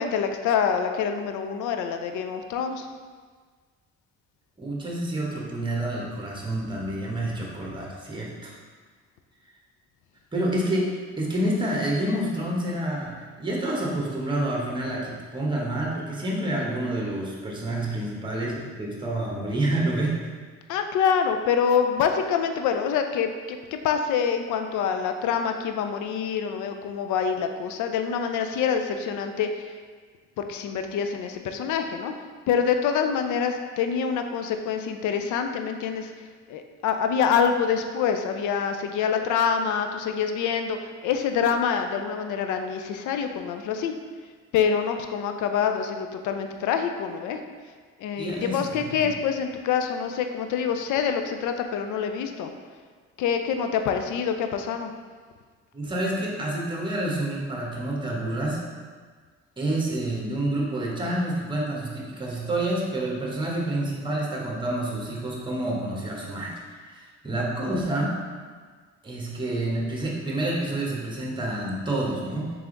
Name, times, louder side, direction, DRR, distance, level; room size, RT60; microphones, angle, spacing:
voice 1, 0.0-2.9 20.7-29.7 30.4-32.1 32.5-43.9 44.5-47.4 48.0-52.5 53.2-54.9, left 7 dB, 80° left, 6 dB, 0.4 m, -26 dB
voice 2, 4.6-8.5 10.3-20.2 48.2-49.1 55.7-58.6 59.6-68.2 69.0-72.5, right 1 dB, 15° right, -3 dB, 1.0 m, -28 dB
3.5 x 3.4 x 3.8 m, 1.5 s
cardioid pair, 90°, 30 cm